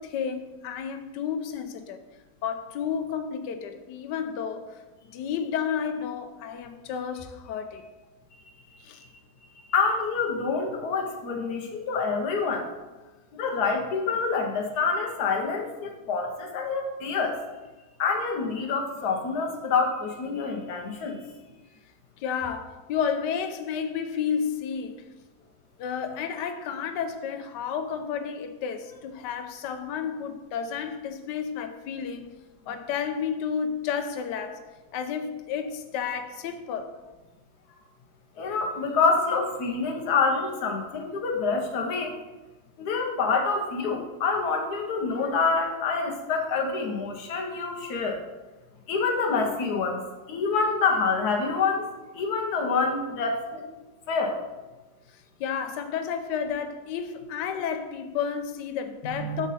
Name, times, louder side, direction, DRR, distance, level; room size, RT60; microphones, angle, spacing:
voice 1, 0.0-2.0 2.4-4.8 5.1-7.8 8.8-9.0 22.2-25.0 25.8-32.3 32.7-34.6 34.9-37.0 55.4-59.5, left 7 dB, 90° left, 1.3 m, -31 dB
voice 2, 9.7-12.7 13.3-17.4 18.0-21.2 38.4-42.2 42.8-48.2 48.9-50.0 50.3-51.9 52.1-53.6 54.1-54.4 59.0-59.4, left 4 dB, 70° left, 1.5 m, -27 dB
6.2 x 5.2 x 4.1 m
omnidirectional pair, 1.8 m